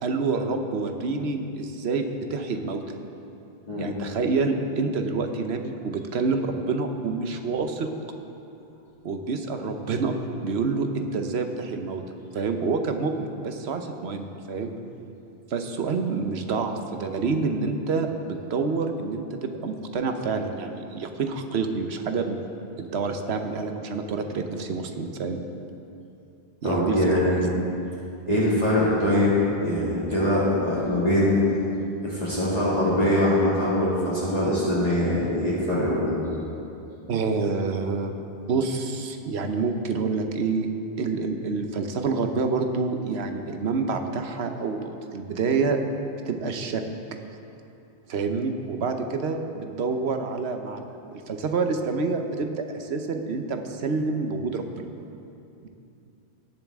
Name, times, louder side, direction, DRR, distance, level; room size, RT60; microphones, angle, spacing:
voice 1, 0.0-2.0 2.3-3.0 3.8-7.9 9.0-10.1 10.4-12.0 12.3-14.7 15.5-22.4 22.8-25.4 26.6-27.0 27.2-27.4 37.1-38.1 38.5-40.7 41.0-45.8 46.3-46.8 48.1-54.9, right 4 dB, 75° right, 6 dB, 1.1 m, -27 dB
voice 2, 26.6-27.5 28.3-29.4 29.6-31.4 32.0-36.2, left 1 dB, 35° left, -9 dB, 2.5 m, -23 dB
18.0 x 7.2 x 3.6 m, 2.7 s
omnidirectional pair, 1.1 m